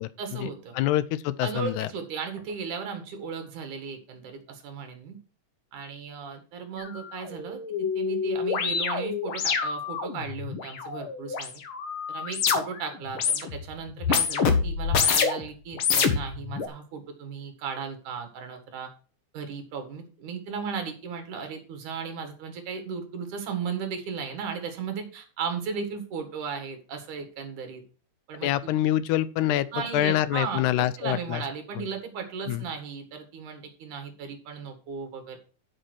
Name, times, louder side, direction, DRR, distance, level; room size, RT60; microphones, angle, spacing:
voice 1, 0.2-0.7 1.4-5.2 5.7-11.6 12.1-18.9 19.3-27.8 28.3-28.7 29.7-35.4, right 6 dB, 75° right, 6 dB, 3.2 m, -36 dB
voice 2, 0.7-1.9 28.4-29.7 29.9-31.4 31.8-31.9 32.5-32.6, left 13 dB, 80° left, 15 dB, 1.9 m, -25 dB
sound 1, 6.8-6.9 7.2-12.9 13.1-13.7 14.0-15.4 15.8-16.7, left 6 dB, 55° left, 1.6 m, -27 dB
9.9 x 5.3 x 6.2 m, 0.38 s
omnidirectional pair, 3.6 m